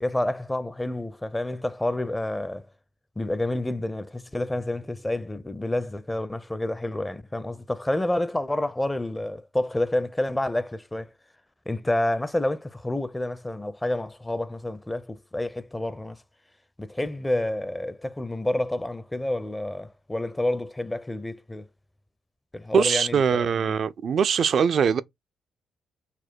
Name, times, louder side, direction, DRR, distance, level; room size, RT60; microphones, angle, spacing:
voice 1, 0.0-2.7 3.2-11.1 11.7-16.2 16.8-21.7 22.5-23.8, left 1 dB, 15° left, 0.5 m, -29 dB
voice 2, 22.7-25.0, right 7 dB, 60° right, 0.4 m, -22 dB
4.1 x 2.2 x 4.4 m
hypercardioid pair, 50°, 0 cm